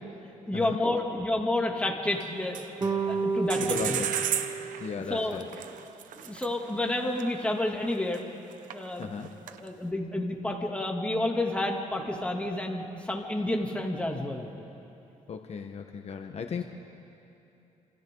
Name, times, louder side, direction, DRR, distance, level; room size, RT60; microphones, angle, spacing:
voice 1, 0.5-2.6 3.1-4.0 5.1-5.4 6.1-8.2 8.7-9.1 9.6-14.5, left 1 dB, 10° left, 0 dB, 2.8 m, -30 dB
sound 1, 2.1-3.2 3.5-8.2 8.5-9.7, right 9 dB, 80° right, 1.0 m, -34 dB
sound 2, 2.8-5.4, right 4 dB, 30° right, 2.7 m, -31 dB
voice 2, 3.6-4.2 4.8-5.5 9.0-9.3 15.3-16.6, left 6 dB, 55° left, 4 dB, 1.3 m, -36 dB
29.5 x 27.5 x 3.9 m, 2.8 s
cardioid pair, 90°, 13 cm